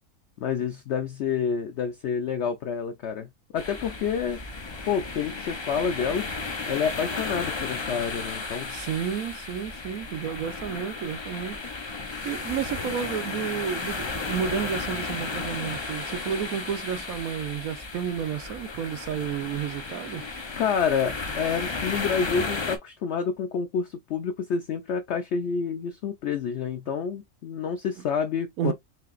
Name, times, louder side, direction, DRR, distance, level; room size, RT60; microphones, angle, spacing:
voice 1, 0.4-4.4 4.9-6.3 6.7-8.7 20.6-28.7, left 6 dB, 60° left, 0.8 m, -28 dB
sound 1, 3.6-22.8, left 3 dB, 35° left, 0.4 m, -34 dB
voice 2, 8.7-11.6 12.2-20.2 28.6-28.7, right 8 dB, 70° right, 1.1 m, -31 dB
5.8 x 2.8 x 2.5 m
omnidirectional pair, 1.6 m